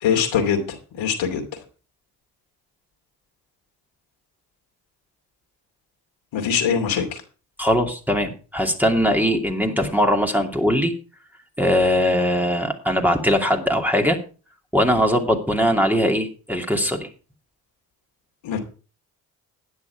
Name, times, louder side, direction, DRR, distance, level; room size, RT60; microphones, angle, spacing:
voice 1, 0.0-0.6 0.9-1.4 6.3-7.2 18.4-18.6, left 7 dB, 65° left, 3 dB, 2.7 m, -22 dB
voice 2, 7.6-10.9 11.6-14.2 14.7-17.1, equal, 5° right, 1 dB, 2.6 m, -20 dB
12.0 x 9.8 x 4.7 m, 0.36 s
hypercardioid pair, 40°, 50 cm